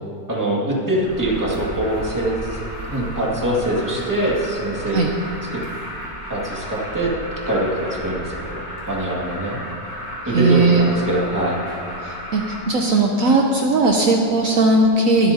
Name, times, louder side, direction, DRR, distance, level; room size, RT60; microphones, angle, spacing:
voice 1, 0.3-5.0 5.5-5.6 6.3-7.1 7.4-9.6 10.2-11.6, right 1 dB, 10° right, -5 dB, 1.9 m, -23 dB
Alarm, 1.0-12.6, equal, 20° left, 3.3 m, -33 dB
voice 2, 10.3-10.9 12.0-15.3, right 3 dB, 65° right, 1 dB, 1.1 m, -17 dB
22.5 x 8.6 x 2.8 m, 2.5 s
omnidirectional pair, 1.6 m